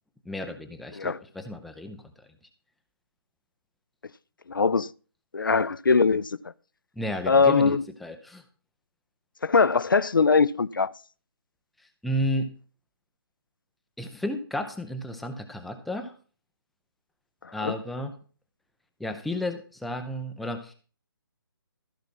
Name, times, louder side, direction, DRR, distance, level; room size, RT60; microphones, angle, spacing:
voice 1, 0.3-2.0 7.0-7.7 8.0-8.4 12.0-12.5 14.0-16.1 17.5-18.1 19.0-20.7, left 1 dB, ahead, 0.5 m, -32 dB
voice 2, 4.5-4.9 5.3-6.4 7.3-7.8 9.4-10.9 17.4-17.7, left 4 dB, 60° left, 0.5 m, -21 dB
14.5 x 5.9 x 5.9 m
figure-of-eight pair, 145°, 13 cm